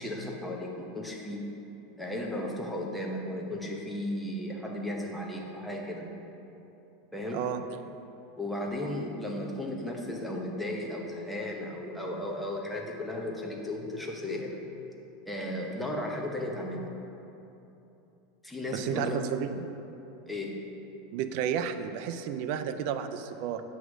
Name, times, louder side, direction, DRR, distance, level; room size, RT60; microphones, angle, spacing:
voice 1, 0.0-1.5 2.0-6.1 7.1-7.4 8.4-14.6 15.3-16.9 18.4-19.2 20.3-20.6, left 1 dB, 5° left, -1 dB, 0.8 m, -35 dB
voice 2, 18.7-19.5 21.1-23.6, right 8 dB, 60° right, 10 dB, 0.4 m, -32 dB
7.9 x 3.1 x 6.1 m, 3.0 s
supercardioid pair, 135°, 0 cm